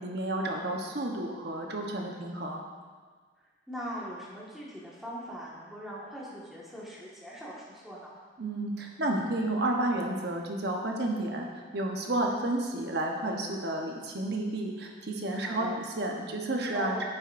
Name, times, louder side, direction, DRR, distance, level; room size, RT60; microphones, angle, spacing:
voice 1, 0.0-2.6 8.4-11.5 11.7-17.0, right 1 dB, 55° right, 1 dB, 1.0 m, -31 dB
voice 2, 3.7-8.1 15.3-15.8 16.7-17.1, equal, ahead, -7 dB, 1.7 m, -41 dB
10.5 x 8.5 x 2.6 m, 1.5 s
head